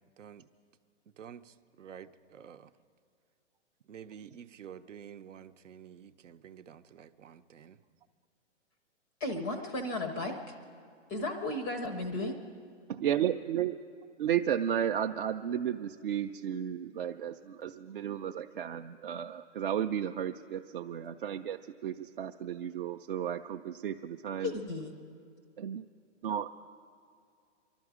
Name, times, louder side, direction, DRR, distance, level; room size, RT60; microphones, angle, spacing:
voice 1, 0.2-0.5 1.1-2.7 3.9-7.8, right 8 dB, 80° right, 11 dB, 0.8 m, -50 dB
voice 2, 9.2-10.5 11.1-12.4 24.4-24.9, left 2 dB, 10° left, 6 dB, 0.5 m, -34 dB
voice 3, 12.9-13.8 14.2-24.5 25.6-25.8 26.2-26.5, right 9 dB, 50° right, 5 dB, 0.4 m, -33 dB
23.5 x 12.5 x 4.9 m, 2.3 s
hypercardioid pair, 150°, 37 cm